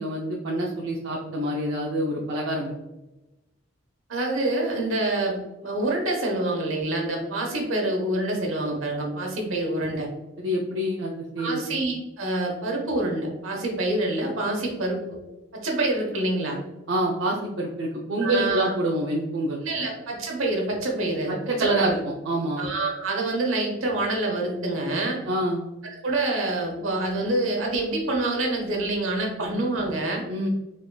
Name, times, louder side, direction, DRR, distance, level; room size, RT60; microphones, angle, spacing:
voice 1, 0.0-2.7 10.4-11.7 16.9-19.6 21.3-22.7 25.3-25.6 29.4-29.5 30.3-30.5, right 1 dB, 65° right, -3 dB, 0.5 m, -27 dB
voice 2, 4.1-10.1 11.4-15.2 15.5-16.6 18.2-18.7 19.6-21.3 21.6-22.0 22.6-25.2 26.0-30.2, right 2 dB, 85° right, 0 dB, 1.1 m, -26 dB
3.8 x 3.6 x 2.2 m, 1.0 s
head